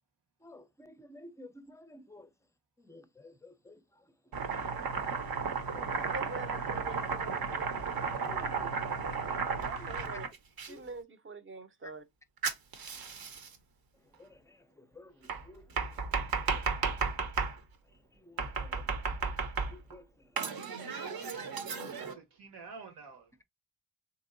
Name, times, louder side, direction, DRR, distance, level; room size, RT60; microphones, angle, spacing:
voice 1, 0.4-2.3 2.9-3.8 5.7-6.2 8.2-8.7 9.4-9.5 10.7-10.8 14.2-14.3 15.0-15.1 15.5-15.6 18.3-18.5 19.7-20.0 21.1-21.3 21.8-21.9, left 1 dB, 10° left, 0.5 m, -51 dB
Domestic sounds home sounds, 4.3-10.7 12.4-13.5 15.3-17.6 18.4-19.9 20.4-22.1, right 5 dB, 65° right, 0.8 m, -34 dB
voice 2, 6.1-7.7 9.6-10.3 10.7-12.0, right 3 dB, 30° right, 0.7 m, -44 dB
voice 3, 16.4-16.9 21.8-23.4, right 4 dB, 90° right, 1.3 m, -51 dB
3.3 x 2.9 x 2.5 m
cardioid pair, 60°, 39 cm